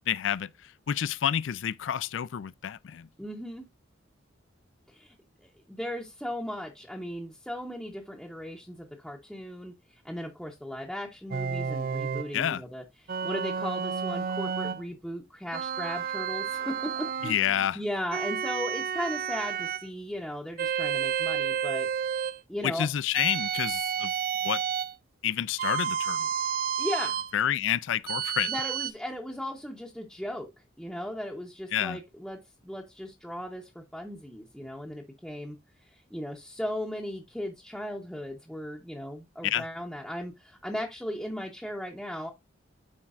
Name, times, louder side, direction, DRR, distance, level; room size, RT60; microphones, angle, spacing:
voice 1, 0.1-3.1 12.3-12.6 17.2-17.8 22.6-24.1 24.4-24.6 25.2-26.3 27.3-28.5 31.7-32.0 39.4-39.6, left 10 dB, 75° left, 0.4 m, -29 dB
voice 2, 3.2-3.7 4.9-21.9 22.5-22.9 26.8-27.2 28.5-30.5 30.8-35.6 35.8-42.3, equal, ahead, 0.8 m, -37 dB
sound 1, 11.3-12.3 13.1-14.8 15.5-17.4 18.1-19.9 20.6-22.4 23.1-24.9 25.6-27.3 28.1-28.9, right 7 dB, 45° right, 0.4 m, -31 dB
11.0 x 4.5 x 2.4 m
head